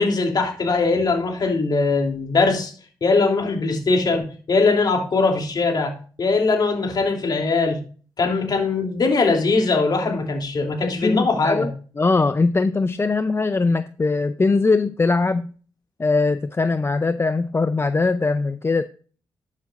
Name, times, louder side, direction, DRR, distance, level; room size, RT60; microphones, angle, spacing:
voice 1, 0.0-2.7 3.0-5.9 6.2-7.8 8.2-11.7, left 3 dB, 55° left, 2 dB, 3.1 m, -21 dB
voice 2, 10.8-15.5 16.0-18.8, left 3 dB, 30° left, 11 dB, 0.5 m, -21 dB
12.0 x 7.4 x 2.5 m, 0.39 s
cardioid pair, 60°, 8 cm